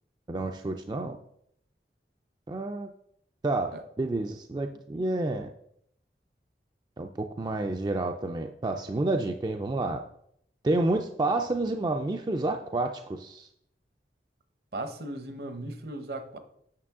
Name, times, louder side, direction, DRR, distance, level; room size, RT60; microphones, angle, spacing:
voice 1, 0.3-1.2 2.5-2.9 3.4-5.5 7.0-7.1 7.4-10.0 10.6-13.5, right 2 dB, 25° right, 0.3 m, -29 dB
voice 2, 14.7-16.4, right 1 dB, 60° right, 0.8 m, -37 dB
8.6 x 6.6 x 3.6 m
head